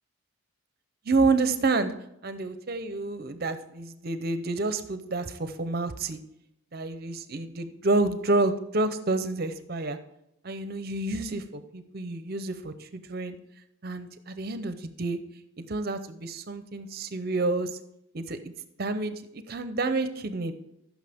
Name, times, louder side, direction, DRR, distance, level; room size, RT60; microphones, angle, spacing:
voice 1, 1.1-1.9 2.2-6.2 6.7-10.0 10.4-13.4 13.8-15.2 15.7-17.8 18.1-18.4 18.8-20.5, right 3 dB, 45° right, 10 dB, 0.6 m, -29 dB
14.5 x 6.3 x 3.5 m, 0.83 s
head